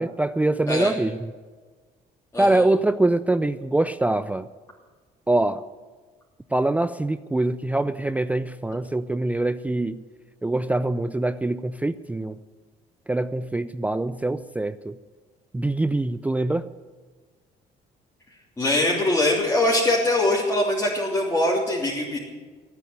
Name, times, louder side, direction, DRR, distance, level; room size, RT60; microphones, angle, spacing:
voice 1, 0.0-1.3 2.4-4.5 5.3-5.6 6.5-10.0 10.4-12.4 13.1-15.0 15.5-16.7, right 2 dB, 10° right, 12 dB, 0.4 m, -24 dB
voice 2, 18.6-22.2, left 1 dB, 15° left, -6 dB, 3.1 m, -22 dB
15.5 x 9.5 x 9.7 m, 1.4 s
cardioid pair, 110°, 17 cm